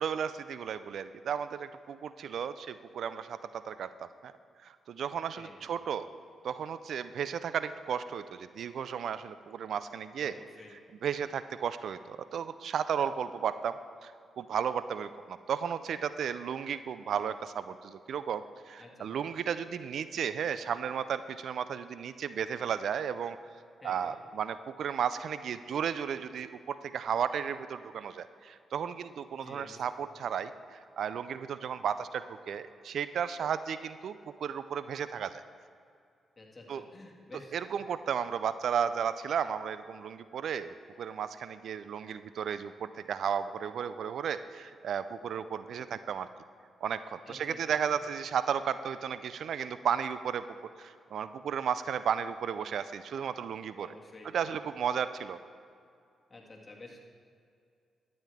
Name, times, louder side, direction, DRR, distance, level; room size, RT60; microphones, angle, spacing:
voice 1, 0.0-4.3 4.6-6.1 6.4-10.3 11.0-14.1 14.4-23.4 23.8-35.4 36.7-36.8 37.5-46.3 46.8-50.4 50.8-53.9 54.3-55.4, right 8 dB, 70° right, 13 dB, 0.3 m, -34 dB
voice 2, 5.3-5.7 10.2-10.7 18.8-19.3 23.8-24.1 29.4-29.9 36.4-37.6 47.3-48.0 53.8-54.3 56.3-57.0, left 2 dB, 35° left, -1 dB, 2.0 m, -50 dB
12.0 x 9.4 x 3.5 m, 2.4 s
supercardioid pair, 50°, 0 cm